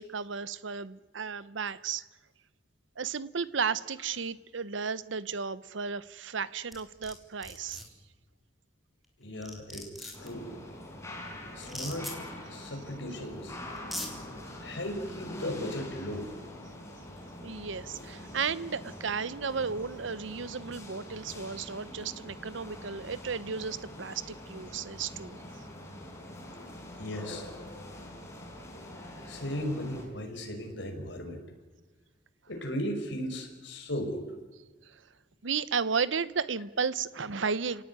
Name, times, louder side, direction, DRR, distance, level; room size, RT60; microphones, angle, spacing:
voice 1, 0.0-2.0 3.0-7.8 12.6-12.7 17.4-25.4 34.9-35.0 35.4-37.8, right 5 dB, 75° right, 17 dB, 0.8 m, -34 dB
sound 1, 6.7-7.1 7.4-7.8 9.0-9.1 9.4-10.3 11.6-12.1 13.2-13.3 13.8-14.1, left 1 dB, ahead, 3.8 m, -39 dB
voice 2, 9.2-10.7 11.6-12.1 12.5-13.6 13.9-14.1 14.6-16.4 26.7-27.5 29.3-31.4 32.5-34.3, equal, 70° left, 3 dB, 5.1 m, -36 dB
sound 2, 10.1-30.1, left 1 dB, 15° left, 4.5 m, -44 dB
30.0 x 18.0 x 9.6 m, 1.3 s
head